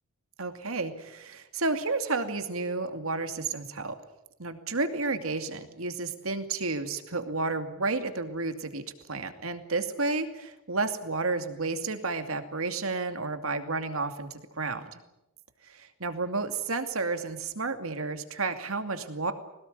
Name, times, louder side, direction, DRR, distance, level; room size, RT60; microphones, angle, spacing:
voice 1, 0.4-3.9 4.4-15.0 15.6-19.3, right 3 dB, 85° right, 7 dB, 2.5 m, -31 dB
22.0 x 19.5 x 9.5 m, 0.88 s
head